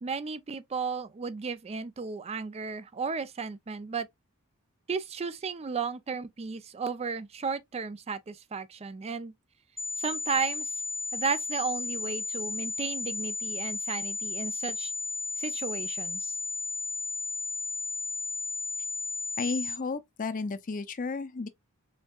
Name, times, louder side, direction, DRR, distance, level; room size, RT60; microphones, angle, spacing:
voice 1, 0.0-4.1 4.9-9.3 10.0-10.7 11.1-14.9 15.4-16.4, right 5 dB, 25° right, 0.3 m, -34 dB
sound 1, 9.8-19.8, left 3 dB, ahead, 0.9 m, -34 dB
voice 2, 19.4-21.5, left 4 dB, 35° left, 0.5 m, -33 dB
4.4 x 3.5 x 2.3 m
head